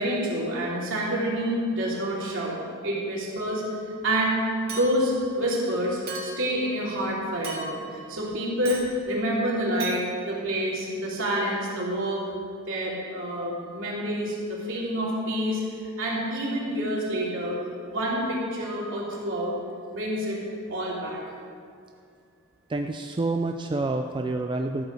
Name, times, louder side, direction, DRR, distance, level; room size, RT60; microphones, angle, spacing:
voice 1, 0.0-3.6 4.0-12.3 12.7-15.6 16.0-17.5 17.8-19.6 19.9-20.4 20.7-21.2, equal, 65° right, -5 dB, 3.4 m, -28 dB
Chink clink, 4.7-5.2 6.1-6.5 7.4-7.9 8.6-8.9 9.8-10.0, right 4 dB, 45° right, 2.4 m, -36 dB
voice 2, 22.7-24.8, right 2 dB, 20° right, 5 dB, 0.4 m, -28 dB
13.5 x 7.9 x 6.3 m, 2.3 s
head